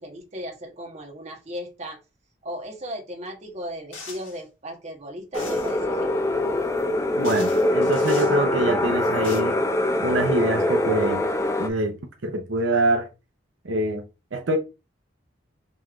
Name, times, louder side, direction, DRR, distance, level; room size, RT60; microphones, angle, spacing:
voice 1, 0.0-2.0 2.4-6.3, equal, 35° right, 1.1 m, -36 dB
sound 1, 3.9-4.4 5.3-5.8 6.8-6.9 7.2-8.4 9.0-9.4, left 4 dB, 90° left, 1.7 m, -41 dB
sound 2, 5.3-11.7, left 1 dB, 15° left, 0.5 m, -23 dB
voice 2, 7.2-9.6 10.0-11.3 11.6-13.1 13.6-14.0 14.3-14.6, right 1 dB, 75° right, 0.7 m, -25 dB
5.4 x 3.1 x 2.4 m
head